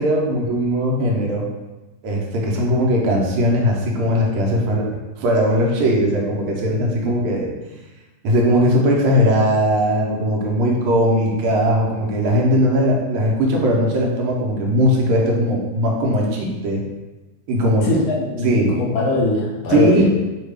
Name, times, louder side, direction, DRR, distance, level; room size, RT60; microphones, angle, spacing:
voice 1, 0.0-1.4 2.0-4.9 5.2-7.5 8.2-16.8 17.5-17.9 18.4-18.7 19.7-20.1, equal, 85° right, -2 dB, 1.5 m, -19 dB
voice 2, 17.8-20.1, left 2 dB, 75° left, -3 dB, 1.3 m, -21 dB
3.6 x 2.2 x 3.2 m, 1.1 s
omnidirectional pair, 2.4 m